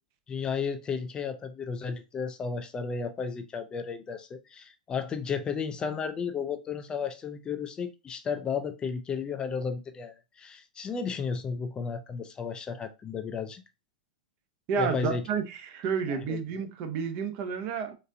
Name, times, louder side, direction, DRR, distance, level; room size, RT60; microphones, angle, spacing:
voice 1, 0.3-13.6 14.8-15.2 16.1-16.4, left 6 dB, 20° left, 0.4 m, -33 dB
voice 2, 14.7-17.9, right 6 dB, 45° right, 0.7 m, -30 dB
4.0 x 2.6 x 2.6 m
hypercardioid pair, 135°, 4 cm